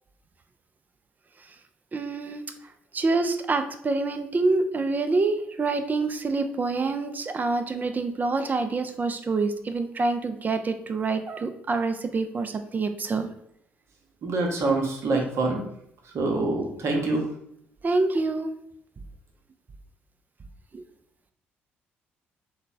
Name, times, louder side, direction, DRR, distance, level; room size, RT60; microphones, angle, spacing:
voice 1, 1.9-2.4 2.9-13.3 17.8-18.5 20.7-20.8, right 3 dB, 30° right, 8 dB, 0.4 m, -26 dB
voice 2, 14.2-15.6 16.1-17.3, right 2 dB, 50° right, 1 dB, 0.8 m, -25 dB
3.2 x 2.2 x 4.0 m, 0.71 s
figure-of-eight pair, 45°, 6 cm